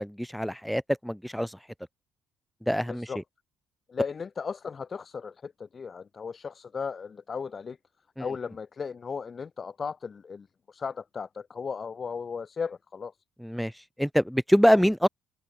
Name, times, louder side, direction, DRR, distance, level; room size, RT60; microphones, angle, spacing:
voice 1, 0.0-1.6 2.7-3.1 8.2-8.3 13.4-13.7 14.0-15.1, equal, ahead, 3.1 m, -24 dB
voice 2, 2.9-3.2 3.9-7.8 8.2-13.1 14.7-14.8, left 5 dB, 35° left, 4.5 m, -36 dB
open air
cardioid pair, 100°, 0 cm